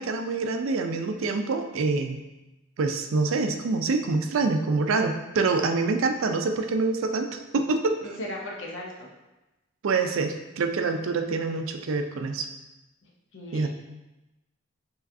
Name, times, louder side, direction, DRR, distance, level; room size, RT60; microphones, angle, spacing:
voice 1, 0.0-2.2 2.8-8.2 9.8-12.5 13.5-13.7, right 3 dB, 80° right, 6 dB, 0.4 m, -26 dB
voice 2, 8.2-9.1 13.3-13.7, left 1 dB, 65° left, -1 dB, 0.8 m, -36 dB
4.9 x 3.1 x 2.6 m, 1.0 s
head